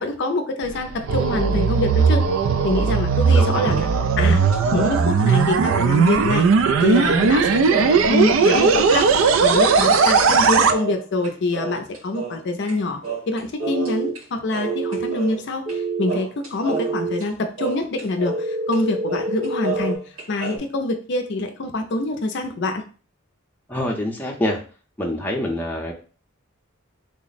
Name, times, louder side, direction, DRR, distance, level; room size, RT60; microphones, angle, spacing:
voice 1, 0.0-2.2 2.6-3.8 4.2-4.5 4.7-6.5 6.8-13.0 13.3-22.8, left 2 dB, 55° left, 5 dB, 0.4 m, -25 dB
sound 1, 0.6-10.7, right 5 dB, 70° right, 0.3 m, -18 dB
voice 2, 3.3-3.9 23.7-24.6 25.0-25.9, left 1 dB, 10° left, -1 dB, 0.5 m, -26 dB
sound 2, 3.3-3.9 4.1-6.5 6.8-6.9 7.2-12.8 13.0-14.2 14.5-15.8 16.1-18.5 18.7-18.8 19.1-20.6, right 5 dB, 85° right, 1.6 m, -32 dB
sound 3, 13.6-14.1 14.6-15.1 15.7-16.2 16.7-17.2 18.3-20.0, right 3 dB, 45° right, 0.9 m, -26 dB
3.4 x 2.0 x 3.9 m, 0.38 s
head